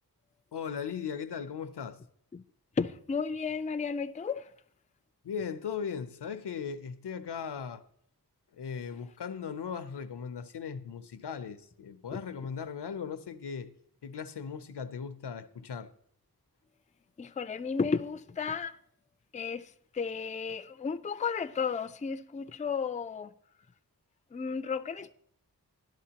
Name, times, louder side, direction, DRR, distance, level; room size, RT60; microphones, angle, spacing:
voice 1, 0.5-2.0 5.2-7.8 8.6-13.7 14.0-15.9, left 6 dB, 85° left, 0.6 m, -38 dB
voice 2, 2.8-4.5 17.2-18.8 19.3-19.7 19.9-23.3 24.3-25.1, left 5 dB, 20° left, 0.3 m, -33 dB
12.0 x 11.0 x 2.8 m
wide cardioid pair, 45°, 40 cm